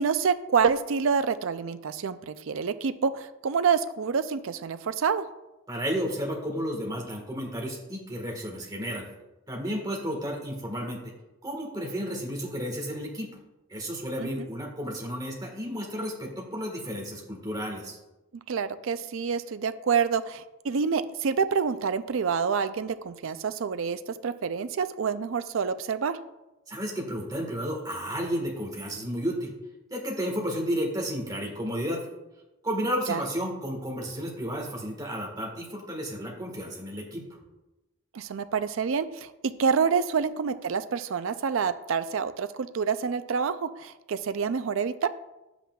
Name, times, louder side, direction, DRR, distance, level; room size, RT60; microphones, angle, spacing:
voice 1, 0.0-5.3 14.2-14.5 18.5-26.2 33.1-33.2 38.1-39.3 39.6-45.1, right 6 dB, 70° right, 12 dB, 0.4 m, -27 dB
voice 2, 5.7-9.1 9.5-11.0 11.4-13.3 13.7-18.0 26.7-29.5 29.9-32.0 32.6-37.2, equal, 15° right, -1 dB, 1.5 m, -32 dB
9.9 x 8.0 x 2.3 m, 1.0 s
head